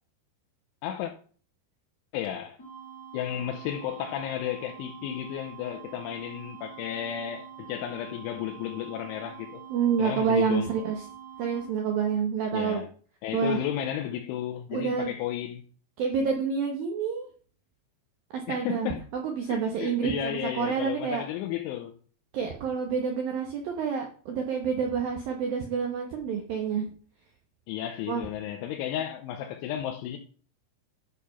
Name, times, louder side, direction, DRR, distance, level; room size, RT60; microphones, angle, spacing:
voice 1, 2.1-2.6 3.1-9.6 10.0-10.7 12.5-12.9 13.2-15.6 18.5-19.0 19.5-21.9 27.7-30.2, left 11 dB, 80° left, 3.1 m, -33 dB
sound 1, 2.6-11.6, right 8 dB, 30° left, 1.7 m, -45 dB
voice 2, 9.7-11.0 11.4-12.8 13.3-13.6 14.7-15.1 16.0-17.3 18.3-21.2 22.3-26.9 28.1-28.2, right 6 dB, 75° right, 2.1 m, -28 dB
11.5 x 5.0 x 5.7 m
omnidirectional pair, 5.7 m